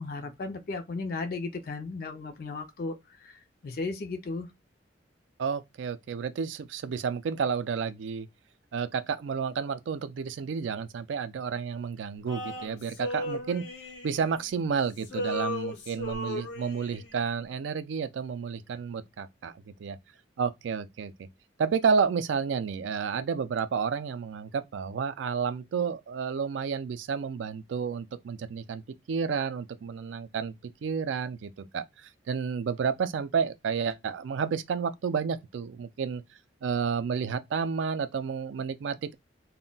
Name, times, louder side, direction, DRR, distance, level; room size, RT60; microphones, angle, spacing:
voice 1, 0.0-3.0 3.2-4.5, left 3 dB, 55° left, 0.4 m, -35 dB
voice 2, 5.4-8.3 8.7-13.6 14.0-19.5 19.8-20.0 20.4-21.1 21.6-28.8 29.1-30.5 30.8-31.9 32.3-36.2 36.6-39.1, right 6 dB, 85° right, 0.3 m, -31 dB
Male singing, 12.3-14.7 15.0-17.2, left 1 dB, 85° left, 0.8 m, -36 dB
2.2 x 2.1 x 3.8 m
head